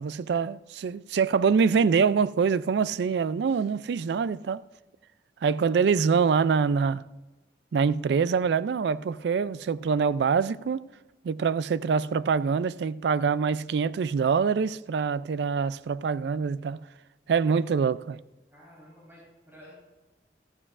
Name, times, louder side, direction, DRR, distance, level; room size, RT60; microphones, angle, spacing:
voice 1, 0.0-4.6 5.4-7.0 7.7-10.8 11.2-16.8 17.3-18.2, right 5 dB, 75° right, 0.3 m, -25 dB
voice 2, 18.5-19.7, equal, 15° right, 4.1 m, -52 dB
15.0 x 14.5 x 2.5 m
head